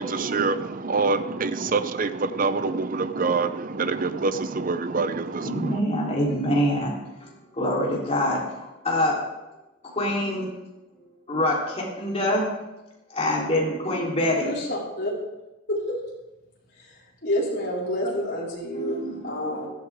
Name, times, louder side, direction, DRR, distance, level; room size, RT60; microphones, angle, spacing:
voice 1, 0.0-5.8, right 4 dB, 45° right, 12 dB, 0.6 m, -26 dB
voice 2, 5.4-9.2 9.8-10.5 11.0-12.5 13.1-14.6 18.0-18.2 18.7-19.7, left 1 dB, 30° left, -3 dB, 3.6 m, -26 dB
voice 3, 14.4-15.1 15.7-16.0 16.8-19.7, left 1 dB, 55° left, -5 dB, 4.8 m, -29 dB
16.0 x 13.0 x 3.6 m, 1.0 s
head